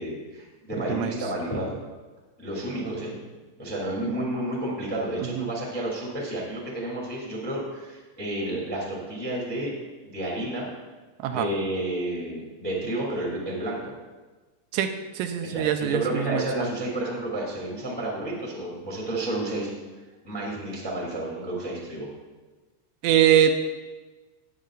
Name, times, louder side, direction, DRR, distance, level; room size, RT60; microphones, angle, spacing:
voice 1, 0.0-1.7 2.4-3.1 3.6-9.7 10.0-10.7 11.2-13.9 15.4-19.7 20.2-22.1, right 1 dB, 5° left, -4 dB, 1.4 m, -31 dB
voice 2, 15.2-16.7 23.0-23.5, right 10 dB, 85° right, 6 dB, 2.9 m, -23 dB
18.0 x 7.5 x 2.5 m, 1.3 s
omnidirectional pair, 5.1 m